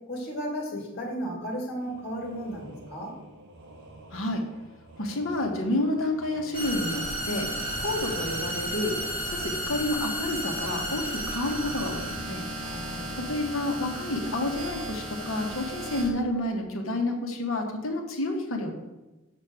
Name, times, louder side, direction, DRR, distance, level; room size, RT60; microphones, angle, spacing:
voice 1, 0.1-3.1 12.6-13.1, equal, 50° left, -1 dB, 2.8 m, -34 dB
sound 1, 1.8-15.3, right 1 dB, 55° right, 1.6 m, -49 dB
voice 2, 4.1-4.4 5.0-7.5 7.8-9.0 9.3-12.4 13.2-18.7, left 1 dB, 65° left, 2 dB, 1.6 m, -29 dB
sound 2, 6.5-16.1, right 1 dB, 25° right, 1.7 m, -33 dB
7.5 x 5.3 x 6.4 m, 1.1 s
head